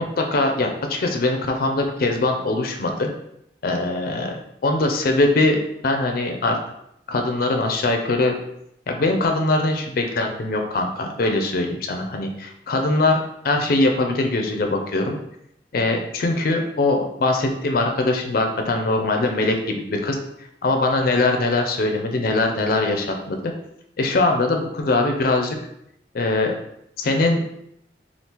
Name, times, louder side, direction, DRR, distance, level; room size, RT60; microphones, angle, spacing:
voice 1, 0.0-3.1 3.6-4.3 4.6-6.6 7.1-8.3 8.9-15.2 15.7-20.2 20.6-23.4 24.0-25.6 26.1-26.5 27.0-27.4, left 2 dB, 55° left, 3 dB, 0.4 m, -22 dB
2.8 x 2.4 x 3.5 m, 0.77 s
head